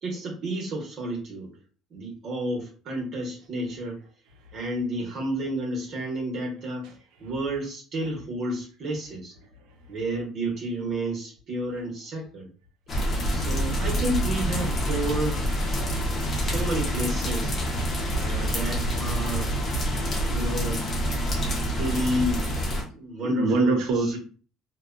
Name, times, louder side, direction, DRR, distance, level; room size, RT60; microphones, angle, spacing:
voice 1, 0.0-1.5 1.9-4.0 4.5-6.9 7.2-9.3 9.9-12.5 13.3-15.5 16.3-17.5 18.1-19.5 20.1-21.0 21.7-22.4 22.9-23.7, right 1 dB, 55° right, -2 dB, 1.0 m, -31 dB
voice 2, 6.8-7.3 9.5-10.0 22.8-22.9 23.2-24.2, right 3 dB, 70° right, 4 dB, 0.6 m, -26 dB
sound 1, 12.9-22.8, equal, 40° left, 0.8 m, -27 dB
2.4 x 2.2 x 2.4 m, 0.39 s
supercardioid pair, 95°, 0 cm